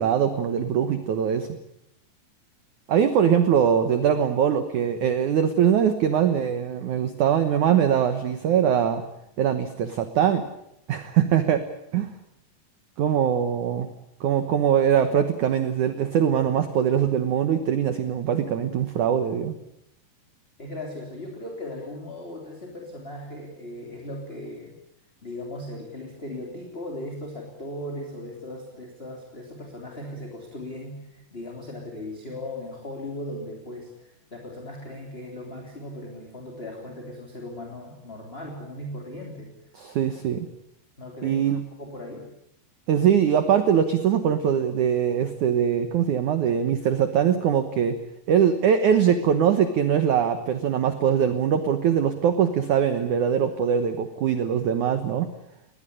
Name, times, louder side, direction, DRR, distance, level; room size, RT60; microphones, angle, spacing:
voice 1, 0.0-1.5 2.9-9.0 9.4-10.4 10.9-11.6 11.9-12.1 13.0-13.9 14.2-19.6 39.8-40.5 41.2-41.6 42.9-48.0 48.3-55.3, right 8 dB, 70° right, 10 dB, 1.8 m, -22 dB
voice 2, 20.6-24.7 25.2-39.5 41.0-42.3, left 1 dB, 15° left, 1 dB, 2.9 m, -38 dB
21.0 x 19.0 x 10.0 m, 0.81 s
omnidirectional pair, 5.2 m